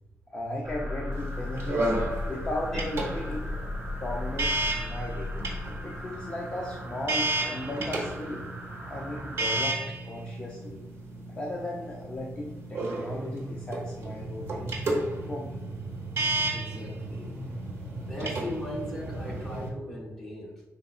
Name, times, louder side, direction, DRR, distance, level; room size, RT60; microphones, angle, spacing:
voice 1, 0.3-1.9 2.3-5.3 5.8-8.4 8.9-9.8 10.0-10.8 11.3-14.8 15.3-15.6, left 1 dB, 25° left, -2 dB, 0.5 m, -36 dB
sound 1, 0.6-9.7, left 1 dB, 20° right, 0.7 m, -37 dB
sound 2, 1.1-19.7, right 2 dB, 55° right, 1.0 m, -33 dB
voice 2, 16.5-17.4 18.0-20.6, left 1 dB, 5° left, -4 dB, 1.1 m, -38 dB
5.1 x 3.9 x 2.4 m, 1.0 s
wide cardioid pair, 175°, 5 cm